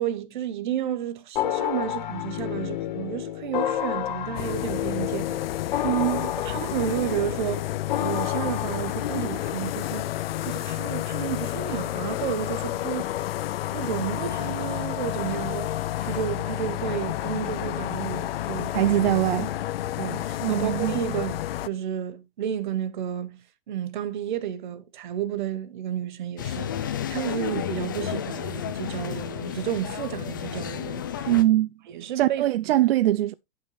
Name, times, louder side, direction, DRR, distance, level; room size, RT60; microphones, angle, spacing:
voice 1, 0.0-5.4 5.7-5.9 6.4-7.7 8.0-10.1 10.4-13.2 13.7-15.7 16.0-19.0 20.0-31.3 31.9-32.7, right 10 dB, 55° right, 0.9 m, -32 dB
sound 1, 1.4-10.1, left 11 dB, 55° left, 0.9 m, -31 dB
sound 2, 4.3-21.7, left 14 dB, 85° left, 0.5 m, -30 dB
voice 2, 5.8-6.3 18.7-19.5 20.4-20.9 31.3-31.7 32.2-33.3, right 14 dB, 85° right, 0.4 m, -22 dB
sound 3, 26.4-31.4, left 9 dB, 25° left, 0.4 m, -32 dB
10.5 x 5.7 x 3.1 m
supercardioid pair, 180°, 29 cm